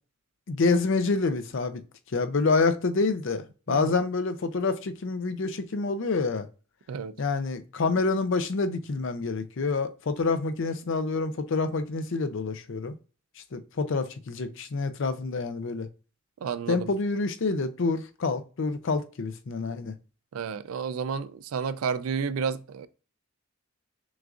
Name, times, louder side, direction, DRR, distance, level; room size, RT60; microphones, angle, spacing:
voice 1, 0.5-1.8 2.1-6.5 7.2-12.9 13.5-15.9 16.7-19.9, left 3 dB, 60° left, 0.5 m, -27 dB
voice 2, 16.4-16.9 20.3-22.9, right 6 dB, 85° right, 0.4 m, -31 dB
6.1 x 2.5 x 2.5 m
head